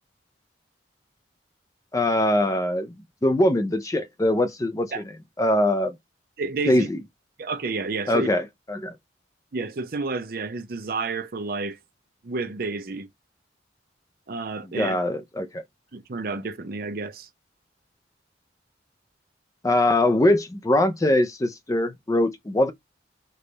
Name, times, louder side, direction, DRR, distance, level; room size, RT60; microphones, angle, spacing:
voice 1, 1.9-2.9 3.2-5.0 5.4-5.9 6.7-7.0 8.1-8.9 14.8-15.6 19.6-22.7, left 1 dB, 20° left, 0.4 m, -22 dB
voice 2, 6.4-6.9 7.4-8.3 9.5-11.8 12.2-13.1 14.3-15.0 15.9-17.3, right 3 dB, 50° right, 0.5 m, -30 dB
3.2 x 2.3 x 3.9 m
head